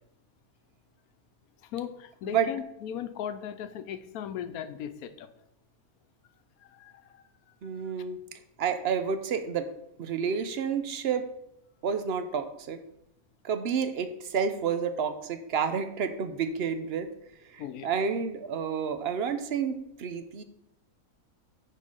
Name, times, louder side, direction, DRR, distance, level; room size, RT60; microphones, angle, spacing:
voice 1, 1.7-5.3 6.6-7.2 17.6-17.9, left 9 dB, 90° left, 11 dB, 1.1 m, -38 dB
voice 2, 7.6-8.2 8.6-9.7 10.0-11.3 11.8-12.8 13.4-17.1 17.5-20.4, right 6 dB, 55° right, 10 dB, 0.8 m, -30 dB
10.0 x 3.9 x 5.3 m, 0.81 s
omnidirectional pair, 1.5 m